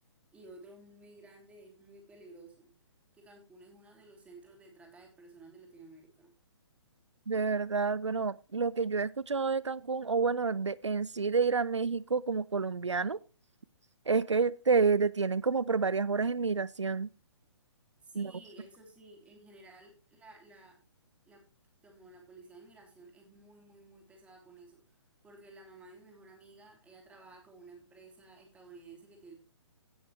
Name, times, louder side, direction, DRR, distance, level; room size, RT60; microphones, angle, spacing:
voice 1, 0.3-2.7 3.1-6.3 18.0-20.8 21.3-21.4 21.8-24.8 25.2-29.3, right 2 dB, 10° right, 1 dB, 3.1 m, -54 dB
voice 2, 7.3-13.2 14.1-17.1 18.2-18.3, right 4 dB, 85° right, 21 dB, 0.4 m, -29 dB
17.0 x 6.9 x 3.1 m, 0.34 s
figure-of-eight pair, 130°, 15 cm